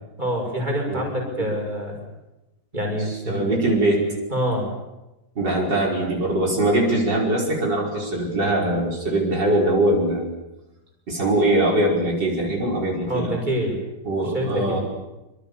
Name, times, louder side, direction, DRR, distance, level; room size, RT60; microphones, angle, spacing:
voice 1, 0.2-2.0 2.7-3.6 4.3-4.7 13.1-13.8 14.2-14.8, equal, 25° right, 1 dB, 6.4 m, -26 dB
voice 2, 3.3-4.0 5.4-10.3 11.1-13.4 14.0-14.8, right 1 dB, 65° right, -2 dB, 5.9 m, -22 dB
26.5 x 25.5 x 7.2 m, 1.0 s
omnidirectional pair, 2.1 m